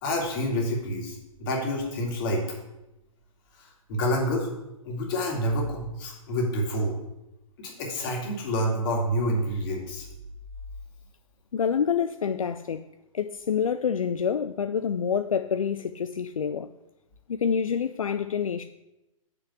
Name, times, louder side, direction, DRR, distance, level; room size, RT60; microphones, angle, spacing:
voice 1, 0.0-2.4 3.6-4.5 4.8-6.9 7.6-10.1, equal, 40° left, 2.3 m, -28 dB
voice 2, 11.5-12.8 13.1-16.7 17.3-18.6, left 7 dB, 75° left, 0.4 m, -27 dB
6.9 x 5.3 x 7.1 m
figure-of-eight pair, 115°, 18 cm